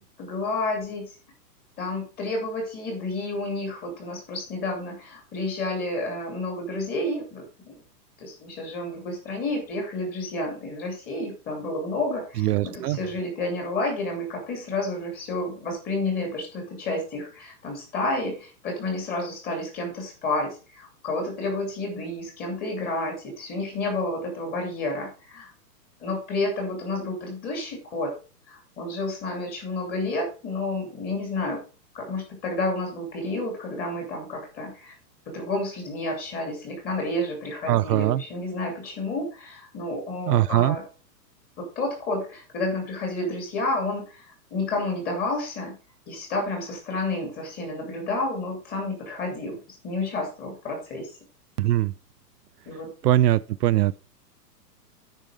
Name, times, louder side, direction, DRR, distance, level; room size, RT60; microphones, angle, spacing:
voice 1, 0.2-1.1 1.8-7.7 8.2-25.5 26.0-28.1 28.5-31.6 31.9-34.9 35.3-40.8 41.6-45.7 46.1-51.1 52.7-52.9, left 2 dB, 20° left, 2.9 m, -30 dB
voice 2, 12.4-13.0 37.7-38.2 40.3-40.8 51.6-51.9 53.0-54.0, right 14 dB, 70° right, 0.6 m, -21 dB
9.1 x 5.4 x 4.8 m
hypercardioid pair, 165°, 49 cm